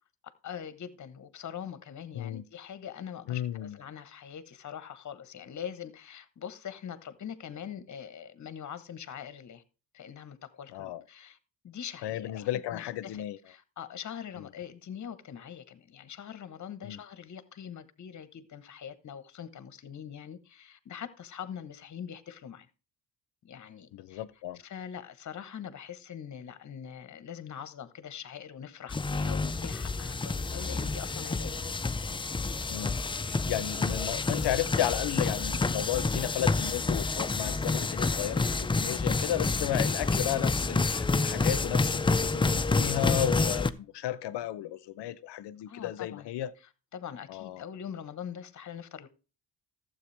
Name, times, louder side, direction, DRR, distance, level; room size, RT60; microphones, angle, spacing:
voice 1, 0.4-9.6 9.9-11.4 11.6-22.7 23.4-24.2 24.5-31.6 45.7-46.3 46.9-49.1, left 8 dB, 40° left, 1.1 m, -43 dB
voice 2, 2.1-2.4 3.3-3.8 10.7-11.0 12.0-13.4 16.8-17.0 23.9-24.6 32.7-33.0 33.2-46.5 47.3-47.6, left 12 dB, 70° left, 0.7 m, -34 dB
sound 1, 28.9-43.7, left 3 dB, 15° left, 0.4 m, -29 dB
12.5 x 7.7 x 3.3 m
cardioid pair, 90°, 42 cm